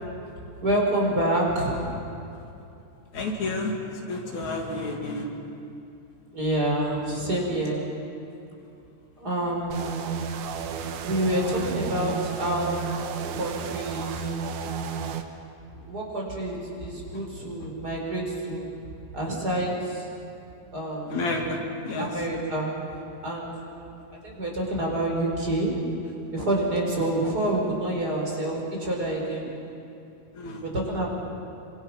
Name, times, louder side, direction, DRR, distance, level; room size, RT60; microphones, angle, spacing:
voice 1, 0.6-1.9 6.3-7.8 9.2-9.9 11.0-12.8 13.3-14.3 15.7-18.7 19.1-20.1 20.7-21.3 22.0-22.7 23.2-23.9 24.2-25.8 26.3-29.5 30.6-31.1, right 1 dB, 30° right, -2 dB, 5.1 m, -27 dB
voice 2, 3.1-3.8 4.1-5.3 21.1-22.1 30.3-30.6, left 2 dB, 75° left, 0 dB, 3.9 m, -30 dB
sound 1, 9.7-15.2, right 6 dB, 85° right, 2.6 m, -32 dB
27.0 x 26.0 x 6.1 m, 2.7 s
omnidirectional pair, 3.3 m